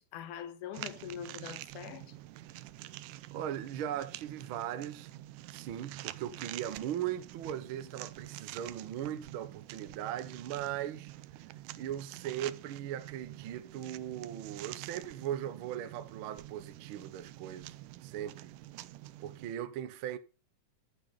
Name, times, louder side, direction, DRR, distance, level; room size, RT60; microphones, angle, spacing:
voice 1, 0.0-2.1, left 9 dB, 80° left, 2.6 m, -43 dB
sound 1, 0.7-19.5, right 15 dB, 85° right, 2.2 m, -47 dB
voice 2, 3.3-5.1 5.5-11.1 11.8-17.7 18.0-18.5 19.2-20.2, right 11 dB, 65° right, 1.3 m, -38 dB
12.0 x 8.3 x 4.9 m
omnidirectional pair, 3.6 m